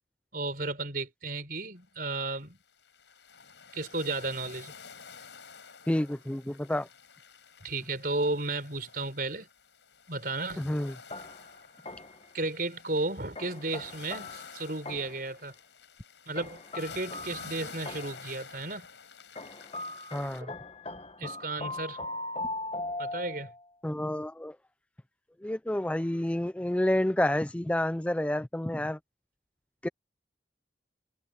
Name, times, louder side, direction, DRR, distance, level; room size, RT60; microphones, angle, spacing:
voice 1, 0.3-2.6 3.7-4.7 7.6-9.5 10.1-10.7 12.3-15.5 16.3-18.9 21.2-22.0 23.0-23.5, right 2 dB, 50° right, 4.9 m, -34 dB
sound 1, 2.2-2.3 2.7-20.4, left 5 dB, 80° left, 5.6 m, -50 dB
voice 2, 5.9-6.9 10.6-10.9 20.1-20.5 23.8-24.6 25.4-29.0 29.8-29.9, left 1 dB, 5° left, 0.3 m, -29 dB
sound 2, 11.1-12.3 13.4-15.3 16.4-18.3 19.4-23.6, left 2 dB, 30° left, 1.2 m, -40 dB
head